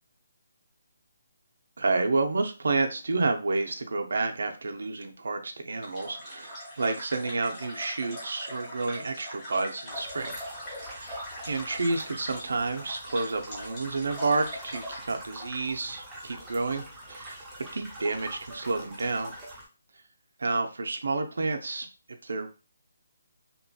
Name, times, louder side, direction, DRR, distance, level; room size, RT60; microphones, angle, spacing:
voice 1, 1.8-10.4 10.8-11.1 11.4-17.4 17.7-19.3 20.4-21.9 22.2-22.5, right 3 dB, 70° right, 5 dB, 0.5 m, -30 dB
sound 1, 5.8-15.1, left 1 dB, 15° left, 1.1 m, -41 dB
sound 2, 9.9-19.6, right 1 dB, 5° right, 0.5 m, -45 dB
2.9 x 2.7 x 2.2 m, 0.33 s
hypercardioid pair, 175°, 0 cm